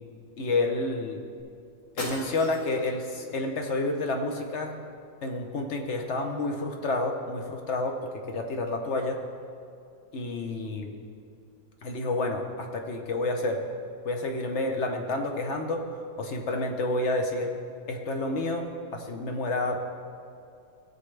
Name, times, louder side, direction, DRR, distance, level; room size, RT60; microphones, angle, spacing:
voice 1, 0.4-1.2 2.0-4.7 5.2-8.0 8.3-9.2 10.1-10.9 11.8-13.6 14.0-17.5 17.9-19.8, left 2 dB, 55° left, 3 dB, 0.9 m, -29 dB
sound 1, 1.4-1.5 2.0-2.9, left 1 dB, 75° left, 3.2 m, -38 dB
16.0 x 7.3 x 3.3 m, 2.5 s
omnidirectional pair, 2.0 m